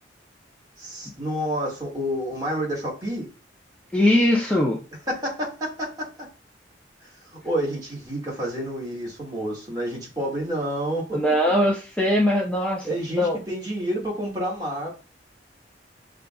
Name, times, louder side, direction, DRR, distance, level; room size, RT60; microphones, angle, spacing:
voice 1, 0.8-3.3 5.1-6.1 7.0-11.2 12.8-14.9, equal, 20° right, 1.7 m, -29 dB
voice 2, 3.9-4.8 11.1-13.4, left 1 dB, 5° left, 0.6 m, -21 dB
6.4 x 2.5 x 2.3 m
head